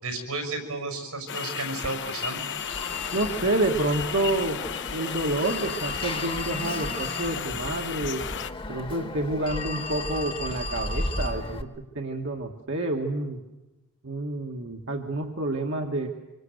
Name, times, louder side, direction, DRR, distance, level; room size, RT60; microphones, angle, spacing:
voice 1, 0.0-2.4, right 3 dB, 85° right, 6 dB, 6.3 m, -33 dB
sound 1, 1.3-8.5, left 8 dB, 55° left, 0.9 m, -34 dB
Telephone, 1.8-11.6, left 1 dB, 25° left, 1.4 m, -35 dB
voice 2, 3.1-4.6 4.9-8.3 8.7-13.4 14.0-16.1, right 2 dB, 60° right, 2 dB, 1.7 m, -28 dB
26.0 x 24.5 x 8.0 m, 1.1 s
head